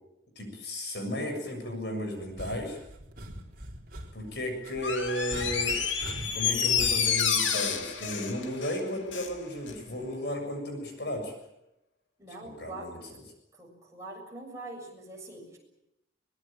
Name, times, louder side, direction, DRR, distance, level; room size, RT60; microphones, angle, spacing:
voice 1, 0.4-2.8 4.1-5.8 6.3-11.3 12.4-13.0, left 1 dB, 60° left, 5 dB, 7.2 m, -34 dB
sound 1, 2.2-8.3 9.7-10.1, right 1 dB, 50° right, 4.0 m, -43 dB
Door, 4.8-9.4 9.7-9.8, left 7 dB, 75° left, 2.7 m, -29 dB
voice 2, 12.2-12.9 13.5-15.6, right 2 dB, 15° right, 0 dB, 7.3 m, -43 dB
23.5 x 20.5 x 8.9 m, 0.86 s
head